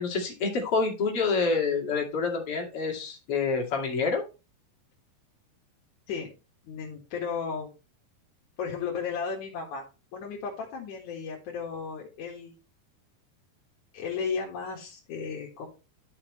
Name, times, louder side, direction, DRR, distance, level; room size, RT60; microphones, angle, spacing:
voice 1, 0.0-4.2, left 4 dB, 40° left, 0 dB, 2.5 m, -27 dB
voice 2, 6.6-7.7 8.6-9.8 10.1-12.6 13.9-15.7, left 6 dB, 55° left, -2 dB, 2.7 m, -34 dB
12.0 x 5.8 x 3.1 m, 0.29 s
omnidirectional pair, 4.8 m